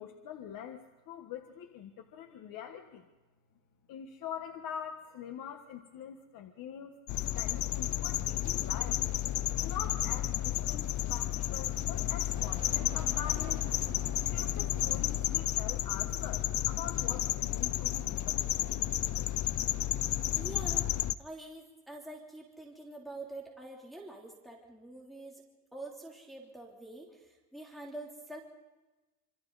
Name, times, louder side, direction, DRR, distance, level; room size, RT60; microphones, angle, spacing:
voice 1, 0.0-3.0 3.9-7.0 7.3-9.0 9.6-13.6 14.2-18.4, left 8 dB, 85° left, 4 dB, 1.5 m, -44 dB
sound 1, 7.1-21.1, left 13 dB, 60° left, 0.6 m, -32 dB
sound 2, 8.4-15.5, right 2 dB, 15° right, 5.5 m, -53 dB
voice 2, 20.3-20.9 21.2-25.4 25.7-28.4, right 2 dB, ahead, -3 dB, 3.2 m, -46 dB
27.5 x 24.5 x 4.1 m, 1.1 s
cardioid pair, 150°, 33 cm